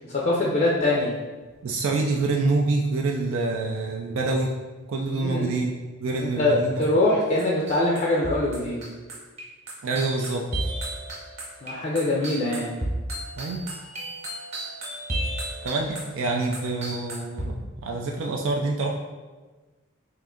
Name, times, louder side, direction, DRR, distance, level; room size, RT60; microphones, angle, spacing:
voice 1, 0.1-1.1 5.2-5.5 6.2-8.8 11.6-12.7, left 2 dB, 40° left, -4 dB, 0.5 m, -23 dB
voice 2, 1.6-4.5 4.9-6.9 9.8-10.7 13.4-13.7 15.6-17.5 17.8-19.0, right 3 dB, 70° right, 0 dB, 0.3 m, -26 dB
sound 1, 6.8-7.1 7.4-17.4, right 1 dB, 35° right, 1.0 m, -33 dB
3.5 x 2.5 x 3.7 m, 1.3 s
head